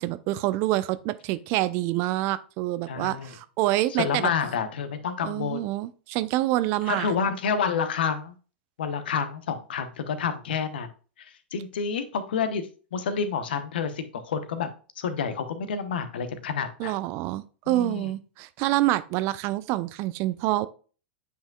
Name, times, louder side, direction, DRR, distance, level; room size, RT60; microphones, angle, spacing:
voice 1, 0.0-4.3 5.2-7.1 16.8-20.7, right 16 dB, 45° right, 0.5 m, -27 dB
voice 2, 2.9-3.3 3.9-5.7 6.9-8.3 8.8-10.9 11.2-14.7 15.0-16.9 17.7-18.1, left 6 dB, 65° left, 1.0 m, -29 dB
8.9 x 5.4 x 2.3 m
figure-of-eight pair, 95°, 6 cm